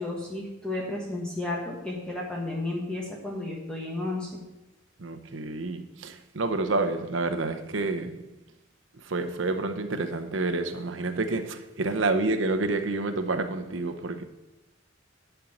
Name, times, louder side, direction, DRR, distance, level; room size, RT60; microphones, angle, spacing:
voice 1, 0.0-4.4, left 2 dB, 5° left, 1.4 m, -32 dB
voice 2, 5.0-8.2 9.0-14.2, right 2 dB, 70° right, 0.8 m, -29 dB
11.0 x 4.5 x 7.9 m
head